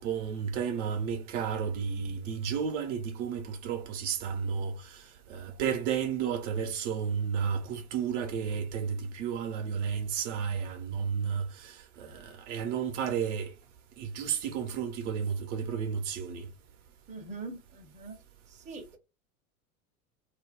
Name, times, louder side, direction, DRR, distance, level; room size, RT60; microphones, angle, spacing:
voice 1, 0.0-13.5 14.0-16.5, right 7 dB, 55° right, 0.8 m, -32 dB
voice 2, 17.1-18.2 18.6-19.0, right 3 dB, 15° right, 0.7 m, -42 dB
2.6 x 2.2 x 3.4 m
figure-of-eight pair, 85°, 44 cm